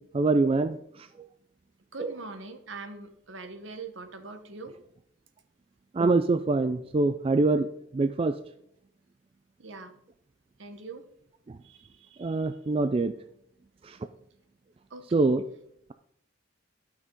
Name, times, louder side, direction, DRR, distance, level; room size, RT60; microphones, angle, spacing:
voice 1, 0.1-0.8 2.0-2.1 5.9-7.7 7.9-8.3 12.2-13.1 13.9-14.0 15.1-15.4, right 3 dB, 30° right, 10 dB, 0.3 m, -24 dB
voice 2, 1.9-4.8 9.6-10.0 10.6-11.0 11.6-12.5 14.9-15.3, right 3 dB, 70° right, 8 dB, 1.1 m, -43 dB
11.5 x 6.2 x 5.2 m, 0.73 s
head